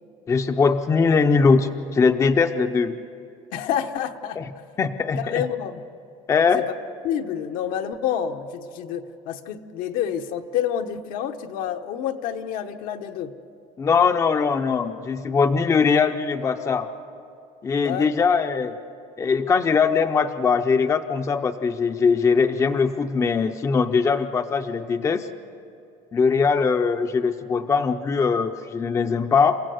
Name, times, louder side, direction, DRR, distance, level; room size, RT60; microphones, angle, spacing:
voice 1, 0.3-3.0 4.4-4.5 4.8-5.5 6.3-6.7 13.8-16.9 17.6-18.8 19.2-25.3 26.1-29.6, left 5 dB, 20° left, 8 dB, 0.6 m, -21 dB
voice 2, 3.5-4.4 5.2-5.8 6.5-6.7 7.0-13.3 17.8-18.1, left 9 dB, 70° left, 6 dB, 1.1 m, -28 dB
29.0 x 16.0 x 7.8 m, 2.6 s
cardioid pair, 150°, 15 cm